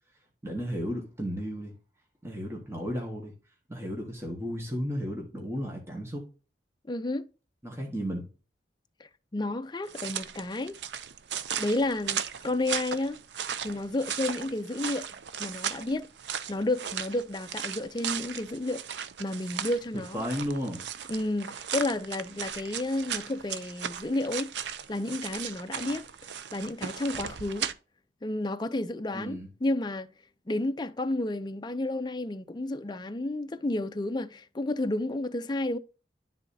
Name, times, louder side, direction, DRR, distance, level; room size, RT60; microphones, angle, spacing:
voice 1, 0.4-1.7 2.2-3.3 3.7-6.2 7.6-8.3 20.1-20.8 29.1-29.5, equal, 15° right, 1.5 m, -34 dB
voice 2, 6.9-7.3 9.3-10.8 11.6-13.2 13.6-15.1 15.4-16.1 16.5-18.8 19.2-20.2 21.1-24.5 24.9-26.1 26.5-27.7 28.2-30.1 30.5-35.8, left 2 dB, 25° left, 0.5 m, -31 dB
sound 1, 9.9-27.7, right 8 dB, 80° right, 0.6 m, -37 dB
12.0 x 4.0 x 2.7 m
head